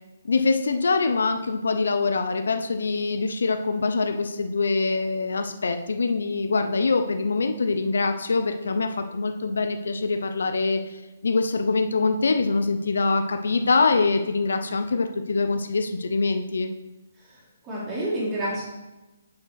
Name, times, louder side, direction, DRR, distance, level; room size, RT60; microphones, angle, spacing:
voice 1, 0.2-16.7, left 3 dB, 80° left, 6 dB, 0.7 m, -24 dB
voice 2, 17.2-18.6, right 1 dB, 20° right, -9 dB, 2.2 m, -29 dB
7.4 x 4.7 x 5.9 m, 1.1 s
hypercardioid pair, 165°, 0 cm